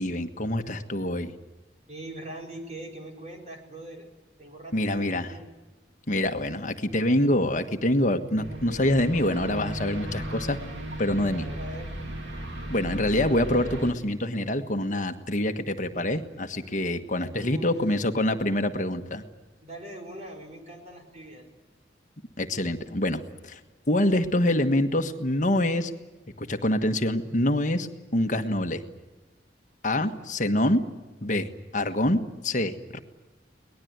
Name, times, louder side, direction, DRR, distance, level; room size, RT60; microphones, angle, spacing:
voice 1, 0.0-1.3 4.7-5.3 6.1-10.6 11.0-11.4 12.7-19.2 22.4-23.6 23.9-25.9 26.4-27.9 28.1-28.8 29.8-30.8 31.2-33.0, left 1 dB, 45° left, 7 dB, 1.5 m, -25 dB
voice 2, 1.9-4.1 4.4-5.5 11.3-11.9 17.3-17.8 19.6-21.5, right 1 dB, 40° right, 1 dB, 4.8 m, -41 dB
sound 1, 8.3-13.9, right 1 dB, 85° right, 3.2 m, -36 dB
23.0 x 19.5 x 9.5 m, 1.2 s
head